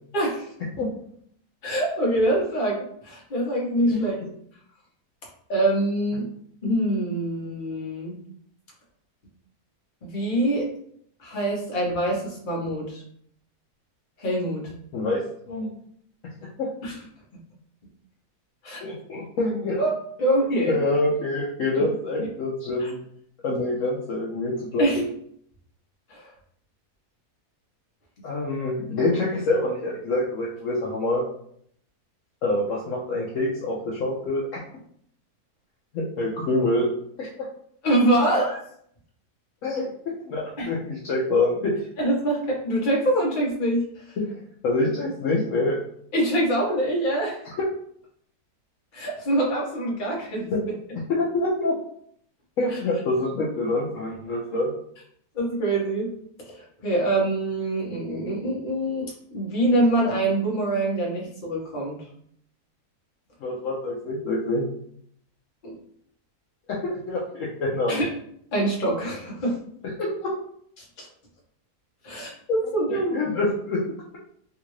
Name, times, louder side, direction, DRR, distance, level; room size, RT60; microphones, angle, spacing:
voice 1, 0.1-0.5 1.6-4.1 5.5-6.3 6.6-8.1 10.0-10.7 11.2-13.0 14.2-14.6 16.8-17.0 18.6-18.8 19.8-19.9 20.2-20.8 22.8-22.9 24.8-25.0 26.1-26.3 37.8-38.6 40.6-40.7 42.0-44.2 46.1-47.4 48.9-50.5 55.3-56.1 56.4-62.0 65.6-65.7 67.9-68.1 68.5-69.6 71.0-71.1 72.0-73.1, right 1 dB, 35° left, -3 dB, 1.0 m, -24 dB
voice 2, 14.9-15.7 16.6-16.7 18.8-19.8 20.7-23.0 23.4-25.1 28.2-31.2 32.4-34.6 35.9-36.9 37.2-37.3 39.6-39.9 40.3-41.7 44.3-44.4 44.6-45.8 50.5-50.6 51.1-51.8 52.6-54.7 63.4-64.6 66.7-68.0 70.0-70.3 72.9-73.8, left 2 dB, 65° left, -4 dB, 0.9 m, -26 dB
3.5 x 2.5 x 3.0 m, 0.66 s
omnidirectional pair, 1.7 m